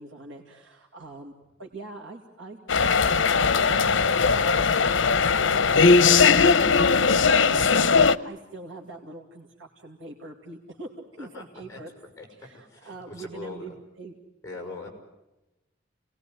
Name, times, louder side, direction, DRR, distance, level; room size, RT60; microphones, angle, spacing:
voice 1, 0.0-1.3 1.6-2.6 3.1-4.5 4.8-4.9 5.2-7.0 7.5-11.9 12.3-14.1, right 2 dB, 85° right, 1 dB, 2.5 m, -43 dB
sound 1, 2.7-8.2, left 5 dB, 80° left, 0.8 m, -19 dB
Strum, 8.7-8.9, equal, 25° right, 6.5 m, -49 dB
voice 2, 11.2-11.8 12.2-12.3 12.7-13.7 14.4-14.9, left 2 dB, 15° left, 3 dB, 6.2 m, -41 dB
29.0 x 19.0 x 9.5 m, 1.0 s
head